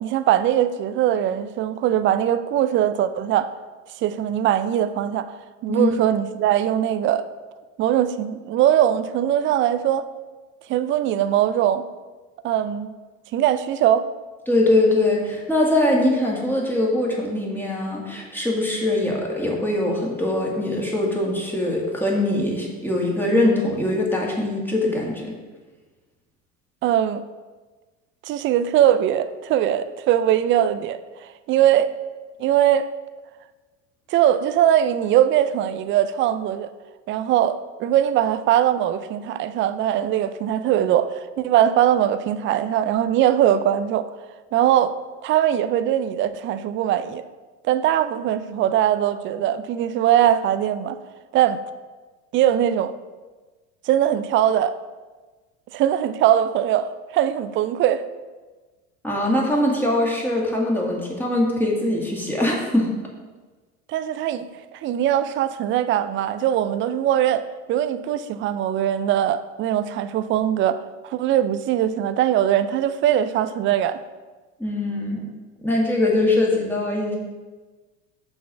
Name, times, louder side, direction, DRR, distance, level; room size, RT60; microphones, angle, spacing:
voice 1, 0.0-3.5 4.0-7.3 7.8-10.1 10.7-11.8 12.4-12.9 13.3-14.1 26.8-27.2 28.3-31.9 32.4-32.9 34.1-36.7 37.1-44.1 44.5-44.9 45.2-47.2 47.7-51.0 51.3-51.6 52.3-52.9 53.9-54.7 55.7-58.0 63.9-64.5 64.8-67.4 67.7-74.0, right 11 dB, 30° right, 0.4 m, -21 dB
voice 2, 14.5-25.3 59.0-62.9 74.6-75.3 75.6-77.2, left 1 dB, 5° left, 1.8 m, -22 dB
6.2 x 3.9 x 5.9 m
hypercardioid pair, 80°, 42 cm